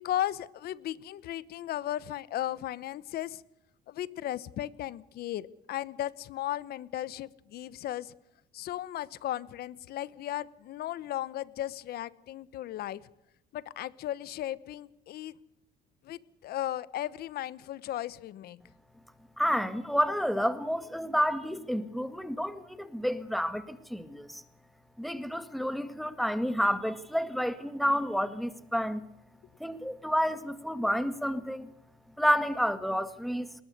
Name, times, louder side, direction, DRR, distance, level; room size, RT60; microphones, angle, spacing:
voice 1, 0.0-3.4 3.9-8.1 8.5-13.0 13.5-15.4 16.0-18.6, left 13 dB, 70° left, 19 dB, 1.0 m, -36 dB
voice 2, 19.4-24.4 25.0-29.0 29.6-31.7 32.2-33.5, equal, ahead, 11 dB, 1.8 m, -30 dB
20.0 x 19.5 x 6.7 m, 0.83 s
cardioid pair, 110°, 17 cm